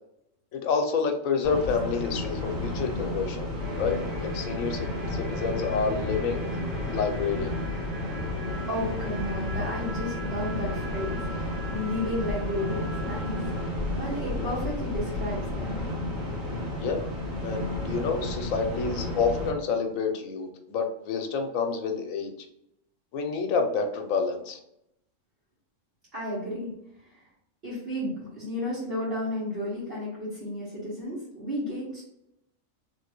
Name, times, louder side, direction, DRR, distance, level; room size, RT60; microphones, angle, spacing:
voice 1, 0.5-3.5 3.8-6.4 6.9-7.6 16.8-17.1 17.4-22.3 23.1-24.6, left 5 dB, 85° left, 5 dB, 1.0 m, -28 dB
sound 1, 1.4-19.5, left 1 dB, 75° right, 1.7 m, -32 dB
sound 2, 3.6-13.7, right 1 dB, 20° right, 0.6 m, -41 dB
voice 2, 8.7-13.4 14.0-15.8 26.1-26.7 27.6-32.0, left 1 dB, 50° right, -11 dB, 1.5 m, -32 dB
3.2 x 2.9 x 2.9 m, 0.80 s
omnidirectional pair, 1.4 m